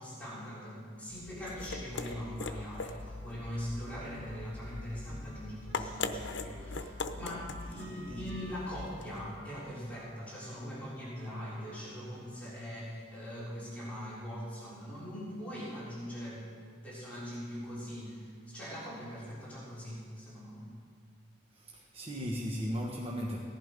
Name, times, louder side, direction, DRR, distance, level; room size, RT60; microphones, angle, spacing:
voice 1, 0.0-16.4 16.8-20.7, equal, 10° left, -9 dB, 3.8 m, -41 dB
sound 1, 1.1-9.3, left 3 dB, 85° left, 0.8 m, -41 dB
Trumpet, 4.2-12.5, equal, 75° right, 1.3 m, -57 dB
voice 2, 21.5-23.4, equal, 35° right, -2 dB, 1.2 m, -36 dB
17.0 x 11.0 x 5.2 m, 2.1 s
head